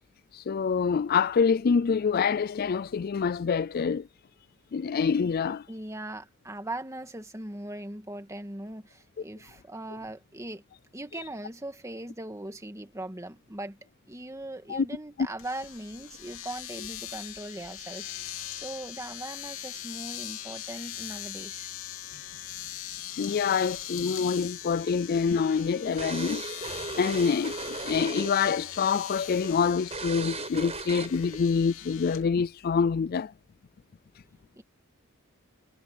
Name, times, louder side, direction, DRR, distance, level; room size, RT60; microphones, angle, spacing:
voice 1, 0.3-4.0 4.7-5.6 14.7-14.9 23.2-26.4 27.0-27.6 27.8-33.3, left 6 dB, 45° left, 0.4 m, -26 dB
voice 2, 5.7-10.6 10.9-13.8 14.1-21.7 34.6-34.7, right 1 dB, 15° right, 2.0 m, -40 dB
Domestic sounds home sounds, 15.4-32.2, left 11 dB, 75° left, 3.6 m, -41 dB
sound 1, 24.9-28.5 28.8-29.0 29.4-29.5 29.9-31.4, right 3 dB, 30° right, 5.4 m, -37 dB
head